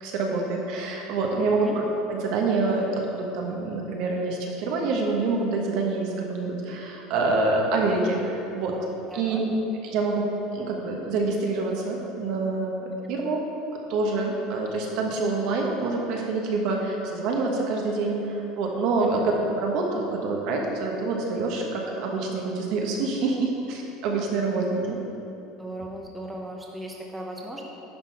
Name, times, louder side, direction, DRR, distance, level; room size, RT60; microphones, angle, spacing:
voice 1, 0.0-1.8 2.1-8.7 9.1-9.6 9.8-13.4 13.9-25.0, right 3 dB, 60° right, 0 dB, 1.2 m, -26 dB
voice 2, 9.1-9.4 19.0-19.1 25.6-27.7, right 1 dB, 5° right, -1 dB, 0.7 m, -37 dB
10.0 x 4.0 x 4.7 m, 3.0 s
supercardioid pair, 140°, 0 cm